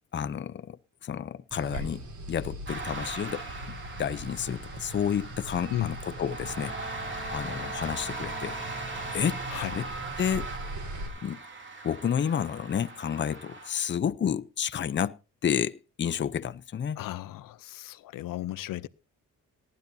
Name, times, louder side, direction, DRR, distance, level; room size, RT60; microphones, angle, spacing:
voice 1, 0.1-6.7 7.3-8.6 9.1-9.9 10.2-10.5 11.2-11.4 11.8-15.1 15.4-17.0, left 8 dB, 35° left, 0.6 m, -30 dB
sound 1, 1.5-11.1, right 1 dB, 60° right, 4.1 m, -41 dB
sound 2, 2.7-13.7, right 3 dB, 35° right, 2.7 m, -39 dB
Bowed string instrument, 6.4-9.6, left 2 dB, 5° left, 3.0 m, -46 dB
voice 2, 17.0-18.9, left 15 dB, 80° left, 0.6 m, -34 dB
18.5 x 12.0 x 2.7 m
cardioid pair, 100°, 33 cm